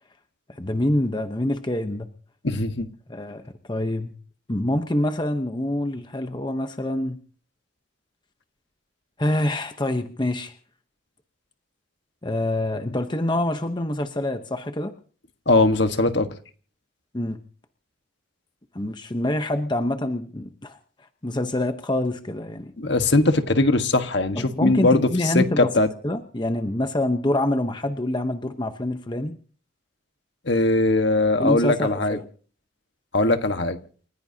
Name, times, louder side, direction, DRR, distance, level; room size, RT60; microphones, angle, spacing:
voice 1, 0.6-2.1 3.1-3.4 3.7-4.1 4.5-7.2 9.2-10.5 12.2-14.9 17.1-17.4 18.7-20.8 21.2-22.7 24.4-25.7 26.0-29.4 31.4-32.2, left 1 dB, 20° left, 0.9 m, -26 dB
voice 2, 2.4-2.9 15.5-16.3 22.8-25.9 30.4-32.2 33.1-33.8, left 2 dB, 60° left, 1.5 m, -20 dB
29.5 x 15.5 x 2.9 m
head